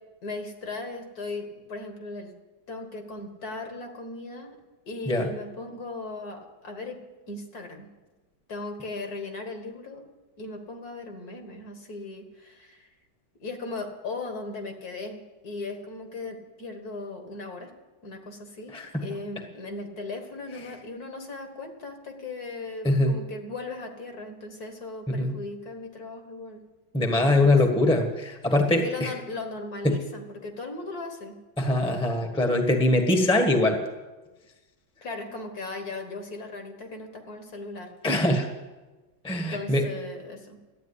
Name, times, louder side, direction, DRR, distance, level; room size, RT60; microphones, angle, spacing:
voice 1, 0.2-2.3 2.7-4.6 4.9-7.0 7.3-7.9 8.5-10.0 10.4-12.9 13.4-17.7 18.0-26.6 26.9-27.6 28.8-31.4 35.0-37.9 39.5-40.6, left 3 dB, 50° left, 4 dB, 2.1 m, -37 dB
voice 2, 18.7-19.0 22.8-23.1 25.1-25.4 26.9-29.1 29.8-30.0 31.6-33.8 38.0-38.5 39.2-39.9, left 1 dB, 5° left, 4 dB, 1.2 m, -22 dB
13.0 x 9.1 x 9.8 m, 1.2 s
omnidirectional pair, 2.1 m